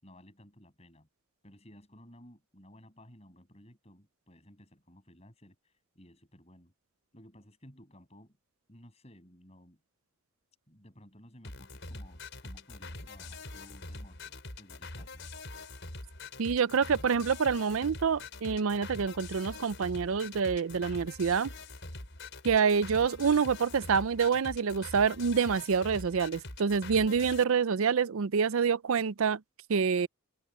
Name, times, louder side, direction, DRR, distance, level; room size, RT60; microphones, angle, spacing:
voice 1, 0.0-1.1 1.4-6.7 7.1-8.4 8.7-9.8 10.7-15.2, equal, 30° left, 7.0 m, -56 dB
sound 1, 11.4-27.4, left 2 dB, 55° left, 6.1 m, -44 dB
voice 2, 16.4-21.5 22.4-29.4 29.7-30.1, right 6 dB, 70° right, 0.5 m, -27 dB
head